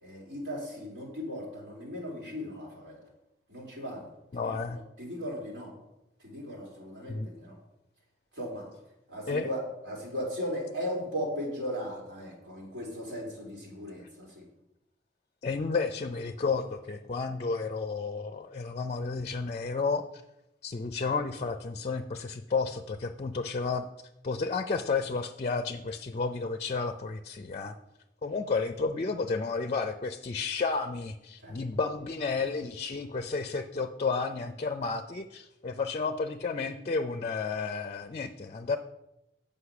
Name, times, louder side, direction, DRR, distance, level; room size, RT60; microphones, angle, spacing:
voice 1, 0.0-3.0 3.5-4.1 4.4-5.7 6.2-7.6 8.3-8.7 9.1-14.4 31.4-31.5, equal, 85° right, -4 dB, 3.2 m, -37 dB
voice 2, 4.3-4.8 7.1-7.3 9.3-9.5 15.4-20.1 20.6-23.9 24.2-27.8 28.2-38.8, left 4 dB, 40° left, 9 dB, 0.4 m, -32 dB
8.2 x 5.4 x 5.8 m, 0.90 s
head